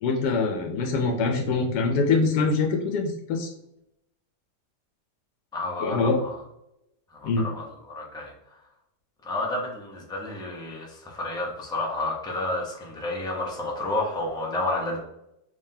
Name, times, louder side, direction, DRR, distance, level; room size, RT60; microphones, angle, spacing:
voice 1, 0.0-3.5 5.8-6.2 7.2-7.5, left 4 dB, 80° left, 2 dB, 1.1 m, -24 dB
voice 2, 5.5-6.3 7.1-8.3 9.2-15.0, left 2 dB, 5° left, -2 dB, 0.4 m, -30 dB
3.7 x 3.2 x 2.7 m, 0.81 s
omnidirectional pair, 1.7 m